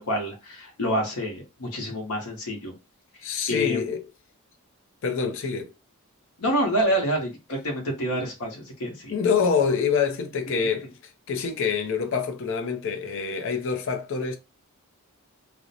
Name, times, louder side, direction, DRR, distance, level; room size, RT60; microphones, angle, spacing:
voice 1, 0.0-2.7 3.5-3.8 6.4-9.1, equal, 90° left, 0.8 m, -27 dB
voice 2, 3.2-4.0 5.0-5.7 9.1-10.9 11.3-14.4, left 6 dB, 60° left, 0.5 m, -26 dB
2.5 x 2.0 x 2.7 m
head